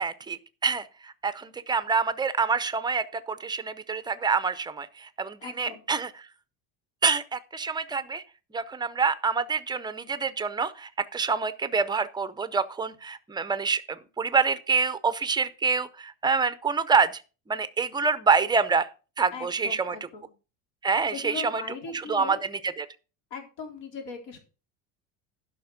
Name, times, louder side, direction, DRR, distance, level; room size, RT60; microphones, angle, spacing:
voice 1, 0.0-6.1 7.0-8.2 8.5-17.2 17.5-18.9 19.2-20.0 20.8-21.6 21.9-22.9, right 5 dB, 10° right, 0.5 m, -27 dB
voice 2, 5.4-5.8 19.3-20.3 21.1-22.5 23.3-24.4, left 5 dB, 70° left, 4.0 m, -39 dB
11.5 x 5.9 x 5.7 m
cardioid pair, 155°, 40 cm